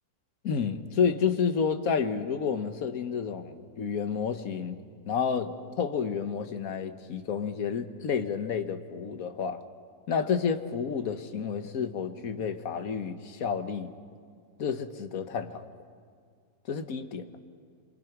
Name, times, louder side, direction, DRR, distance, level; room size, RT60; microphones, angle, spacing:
voice 1, 0.4-4.8 5.0-9.6 10.1-13.9 14.6-15.7 16.7-17.3, left 6 dB, 60° left, 8 dB, 1.6 m, -30 dB
28.0 x 24.0 x 6.0 m, 2.1 s
omnidirectional pair, 1.7 m